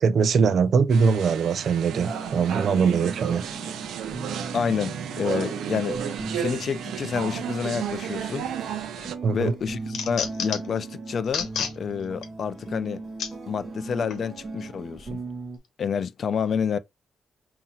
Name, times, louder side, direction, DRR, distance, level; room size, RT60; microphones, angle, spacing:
voice 1, 0.0-3.4 9.2-9.5, right 5 dB, 45° right, 0.5 m, -22 dB
sound 1, 0.9-9.2, right 9 dB, 90° right, 0.6 m, -33 dB
sound 2, 1.9-15.6, right 3 dB, 25° right, 1.0 m, -38 dB
voice 2, 4.5-6.0 6.4-8.5 9.3-11.5 11.8-13.0 13.5-15.2 15.8-16.8, left 6 dB, 40° left, 0.4 m, -28 dB
sound 3, 8.7-9.1 9.5-10.8 11.2-11.7 12.2-12.3 13.2-13.3 14.1-14.2, left 7 dB, 80° left, 1.0 m, -30 dB
5.5 x 2.8 x 2.3 m
wide cardioid pair, 175°, 0 cm